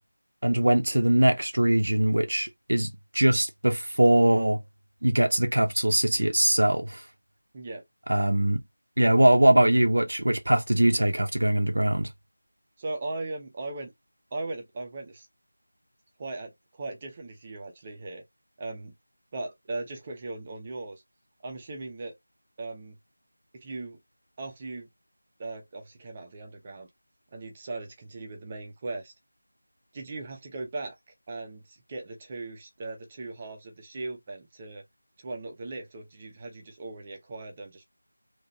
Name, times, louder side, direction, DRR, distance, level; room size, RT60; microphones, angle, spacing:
voice 1, 0.4-4.6 5.0-7.0 8.1-8.6 9.0-12.1, right 1 dB, 70° right, 0.8 m, -22 dB
voice 2, 12.8-13.9 14.3-15.3 16.2-18.2 18.6-18.9 19.3-21.0 21.4-22.1 22.6-23.0 23.5-24.0 24.4-24.9 25.4-26.9 27.3-29.1 29.9-34.8 35.2-37.8, right 2 dB, 20° right, 0.9 m, -38 dB
3.8 x 3.0 x 2.7 m
figure-of-eight pair, 170°, 0 cm